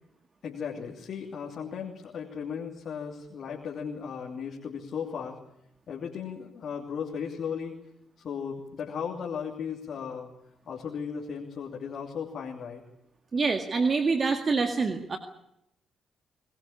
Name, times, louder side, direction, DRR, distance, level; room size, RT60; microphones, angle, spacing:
voice 1, 0.4-5.4 5.9-7.7 8.2-10.3 10.7-12.8, left 7 dB, 60° left, -1 dB, 2.9 m, -36 dB
voice 2, 13.3-15.2, right 4 dB, 45° right, 6 dB, 2.0 m, -26 dB
23.0 x 19.0 x 8.6 m, 0.79 s
hypercardioid pair, 45°, 0 cm